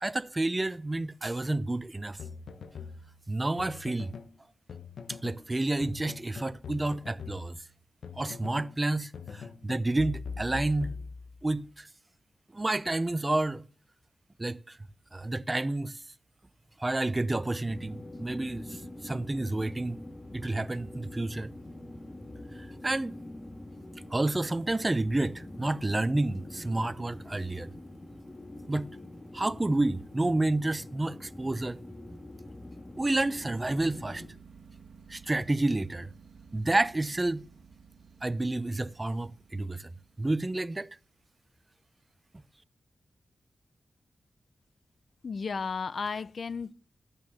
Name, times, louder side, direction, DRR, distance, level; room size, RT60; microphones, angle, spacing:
voice 1, 0.0-2.2 3.3-4.1 5.2-7.6 8.2-11.0 11.4-11.9 12.5-13.6 14.4-14.8 15.1-16.0 16.8-20.0 20.3-21.5 22.6-23.2 24.1-27.7 28.7-28.9 29.3-31.8 33.0-34.2 35.1-36.1 36.5-37.4 38.2-39.9 40.2-41.0, right 2 dB, 25° right, 0.6 m, -30 dB
sound 1, 2.2-4.3 4.7-5.5 5.8-8.8 9.1-11.6, left 5 dB, 85° left, 1.1 m, -42 dB
sound 2, 17.7-34.3, left 1 dB, 25° left, 1.7 m, -45 dB
sound 3, 24.7-25.8 26.2-26.4 26.8-27.0 27.2-27.3 27.6-27.7 28.3-28.4 29.1-29.2 29.7-29.8 31.1-31.2 31.8-31.9 33.0-41.3, right 5 dB, 75° right, 2.0 m, -55 dB
voice 2, 45.2-46.7, left 5 dB, 60° left, 0.6 m, -33 dB
12.5 x 9.0 x 6.3 m
wide cardioid pair, 80°, 0 cm